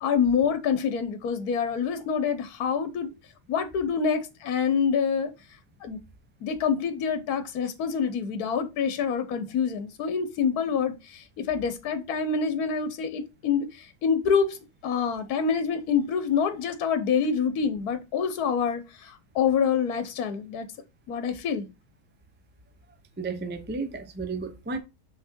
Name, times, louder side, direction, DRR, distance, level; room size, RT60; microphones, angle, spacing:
voice 1, 0.0-3.1 3.5-5.3 5.8-6.0 6.4-20.7 21.1-21.7, left 6 dB, 75° left, 1.4 m, -26 dB
voice 2, 23.2-24.8, right 4 dB, 15° right, 0.4 m, -33 dB
5.8 x 4.2 x 4.4 m
omnidirectional pair, 1.6 m